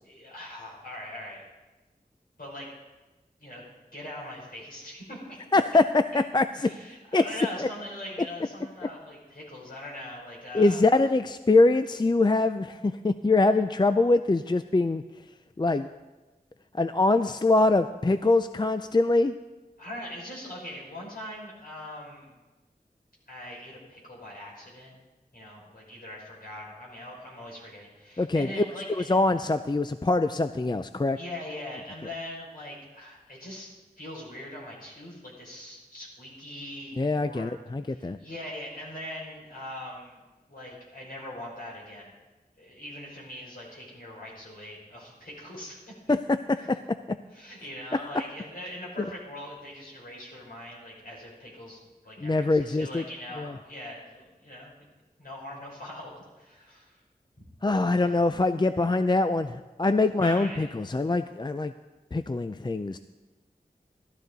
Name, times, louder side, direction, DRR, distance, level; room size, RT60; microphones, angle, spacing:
voice 1, 0.0-1.4 2.4-2.7 3.4-3.6 3.9-5.4 6.1-6.2 6.6-10.8 19.8-22.3 23.3-24.9 25.3-29.2 31.1-33.7 34.0-37.6 37.9-40.2 40.5-42.1 42.6-45.8 47.3-54.9 55.2-57.0 57.9-58.1 60.2-60.7, left 1 dB, 60° left, -5 dB, 5.5 m, -41 dB
voice 2, 5.5-6.7 7.1-7.2 7.6-7.7 10.5-15.0 15.6-15.9 16.8-19.3 28.2-28.5 28.9-31.2 37.0-38.2 46.1-47.2 49.0-49.1 52.2-53.0 53.4-53.5 57.6-61.7 62.1-63.0, left 2 dB, 25° left, 10 dB, 0.4 m, -24 dB
15.0 x 13.0 x 4.0 m, 1.2 s
wide cardioid pair, 55°, 17 cm